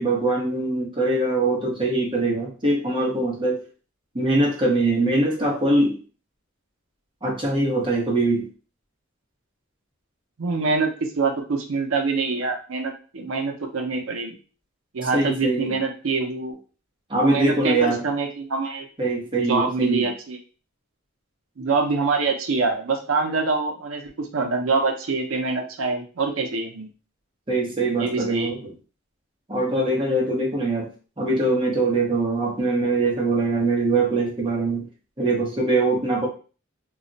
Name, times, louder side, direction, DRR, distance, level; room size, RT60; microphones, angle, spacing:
voice 1, 0.0-3.6 4.1-6.0 7.2-8.5 15.1-15.8 17.1-18.0 19.0-20.1 27.5-28.7 29.5-30.9 31.2-34.8 35.2-36.3, right 2 dB, 25° right, -2 dB, 0.8 m, -22 dB
voice 2, 10.4-14.4 14.9-16.6 17.2-18.9 19.4-20.4 21.6-26.9 28.0-28.5, right 4 dB, 70° right, 4 dB, 0.6 m, -25 dB
2.3 x 2.1 x 3.8 m, 0.36 s
head